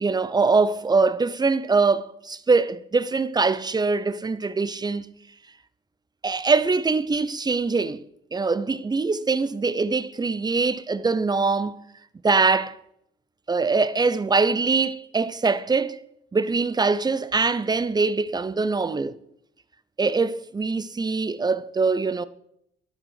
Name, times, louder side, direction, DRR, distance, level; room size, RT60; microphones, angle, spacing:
voice 1, 0.0-5.1 6.2-8.0 8.3-11.8 12.2-12.8 13.5-16.0 16.3-19.1 20.0-22.3, right 4 dB, 20° right, 0.6 m, -23 dB
11.5 x 6.4 x 6.4 m
cardioid pair, 90°, 20 cm